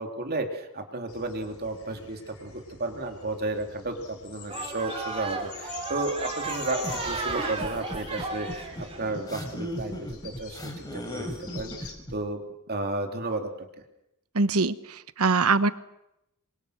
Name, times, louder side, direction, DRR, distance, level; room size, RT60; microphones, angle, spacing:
voice 1, 0.0-9.9 10.2-12.4 12.7-13.7, right 2 dB, 45° right, 4 dB, 2.9 m, -33 dB
sound 1, 1.1-11.9, left 6 dB, 70° left, 4.1 m, -45 dB
sound 2, 4.5-9.0, right 3 dB, 25° right, 3.8 m, -34 dB
sound 3, 6.8-12.2, equal, 20° left, 4.3 m, -37 dB
voice 2, 14.3-15.7, right 4 dB, 90° right, 14 dB, 1.1 m, -23 dB
28.0 x 23.5 x 6.5 m, 0.85 s
head